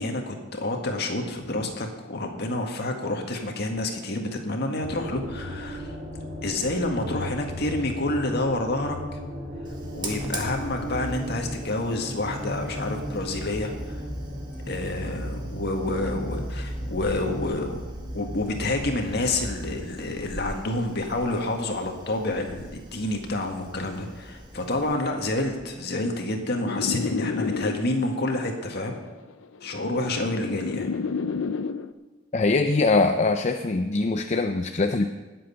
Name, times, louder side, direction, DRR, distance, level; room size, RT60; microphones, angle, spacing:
voice 1, 0.0-5.9 6.4-9.0 9.9-14.0 14.7-17.7 18.1-29.0 29.6-30.9, left 2 dB, 55° left, 3 dB, 1.9 m, -28 dB
sound 1, 4.8-19.9, equal, 40° right, 3.8 m, -35 dB
Fire, 9.6-25.8, right 1 dB, 25° right, 1.9 m, -44 dB
sound 2, 26.6-28.2 29.2-31.9, left 4 dB, 85° left, 0.6 m, -30 dB
voice 2, 32.3-35.1, left 3 dB, 35° left, 6 dB, 0.5 m, -22 dB
19.5 x 7.8 x 5.8 m, 1.2 s
head